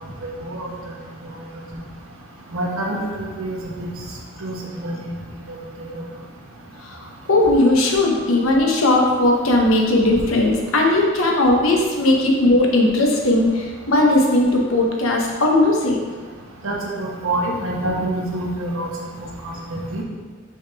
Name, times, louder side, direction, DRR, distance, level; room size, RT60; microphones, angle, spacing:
voice 1, 2.5-3.9 4.4-5.1 5.9-6.0 16.6-18.9 19.7-20.0, right 1 dB, 75° right, -3 dB, 1.3 m, -26 dB
voice 2, 6.8-16.0, left 2 dB, 70° left, 0 dB, 1.0 m, -18 dB
6.3 x 5.1 x 3.4 m, 1.5 s
head